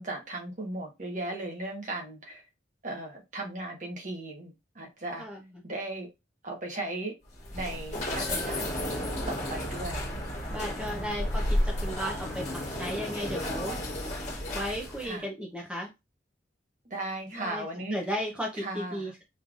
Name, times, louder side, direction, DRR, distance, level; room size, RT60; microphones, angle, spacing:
voice 1, 0.0-2.4 2.8-5.2 5.6-6.1 6.4-7.1 7.5-9.0 9.3-10.0 10.8-11.2 15.0-15.3 16.9-18.0 18.6-19.1, right 2 dB, 40° right, 1.3 m, -37 dB
sound 1, 7.3-15.1, left 1 dB, 40° left, 1.7 m, -32 dB
voice 2, 10.5-14.3 14.5-15.9 17.3-17.6 17.9-19.2, equal, 5° right, 0.8 m, -35 dB
5.4 x 3.2 x 2.5 m
head